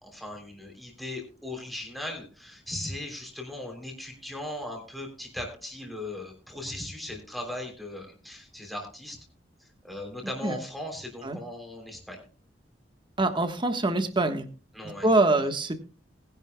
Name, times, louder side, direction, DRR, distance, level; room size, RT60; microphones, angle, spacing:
voice 1, 0.0-9.2 9.6-12.2 14.7-15.5, left 1 dB, ahead, 1 dB, 3.2 m, -38 dB
voice 2, 13.2-14.4 14.8-15.7, right 2 dB, 25° right, 7 dB, 1.3 m, -24 dB
20.0 x 10.5 x 2.2 m, 0.37 s
head